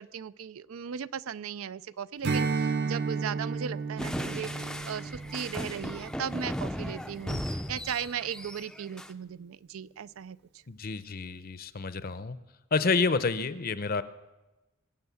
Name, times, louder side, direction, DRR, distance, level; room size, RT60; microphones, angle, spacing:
voice 1, 0.0-10.4, right 8 dB, 85° right, 17 dB, 0.4 m, -37 dB
Strum, 2.2-7.0, right 4 dB, 55° right, 0.7 m, -33 dB
sound 1, 4.0-9.1, equal, 5° left, 0.4 m, -36 dB
voice 2, 10.7-12.4 12.7-14.0, left 4 dB, 45° left, 14 dB, 0.6 m, -29 dB
22.5 x 8.8 x 7.0 m, 1.1 s
head